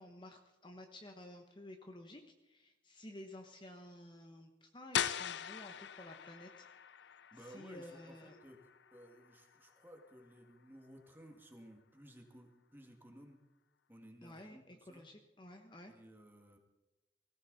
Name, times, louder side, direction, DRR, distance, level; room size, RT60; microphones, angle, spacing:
voice 1, 0.0-6.7 7.4-8.4 14.2-15.9, left 1 dB, 25° left, 4 dB, 1.0 m, -53 dB
sound 1, 4.9-10.6, left 9 dB, 70° left, 0.5 m, -42 dB
voice 2, 7.3-8.6 8.9-13.4 13.9-15.0 15.9-16.6, equal, 10° right, 2 dB, 2.1 m, -57 dB
18.5 x 16.0 x 4.1 m, 1.1 s
head